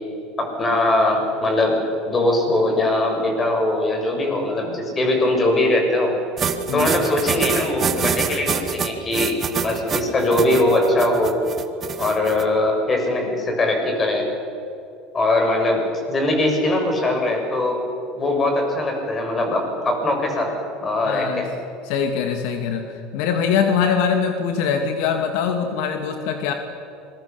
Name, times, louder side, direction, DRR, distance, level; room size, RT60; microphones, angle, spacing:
voice 1, 0.4-1.8 2.1-6.1 6.7-11.4 12.0-14.3 15.1-15.8 16.1-17.8 18.2-20.5 20.8-21.5, left 1 dB, 25° left, 2 dB, 6.9 m, -21 dB
sound 1, 6.4-12.4, right 7 dB, 30° right, 1.8 m, -25 dB
voice 2, 21.0-21.5 21.9-26.5, left 7 dB, 70° left, 5 dB, 2.2 m, -22 dB
26.0 x 22.5 x 7.0 m, 2.7 s
supercardioid pair, 125°, 0 cm